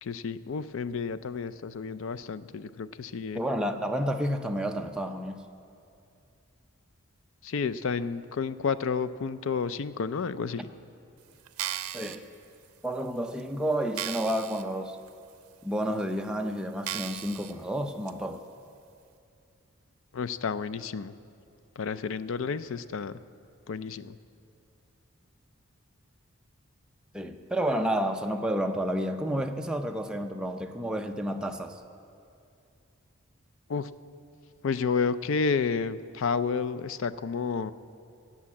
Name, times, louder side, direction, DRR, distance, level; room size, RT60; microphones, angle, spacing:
voice 1, 0.0-3.4 7.4-10.7 20.1-21.1 21.8-23.2 23.7-24.2 33.7-33.9 34.6-37.7, left 5 dB, 60° left, 14 dB, 0.4 m, -31 dB
voice 2, 3.3-5.4 11.9-12.3 12.8-15.0 15.6-18.4 27.1-31.8, equal, 5° right, 4 dB, 0.5 m, -30 dB
sound 1, 11.5-12.2 12.8-12.9 13.4-13.5 13.9-14.6 15.1-15.2 15.9-16.0 16.8-17.5 18.1-18.2, right 12 dB, 85° right, 0.5 m, -35 dB
17.0 x 7.3 x 8.6 m, 2.5 s
head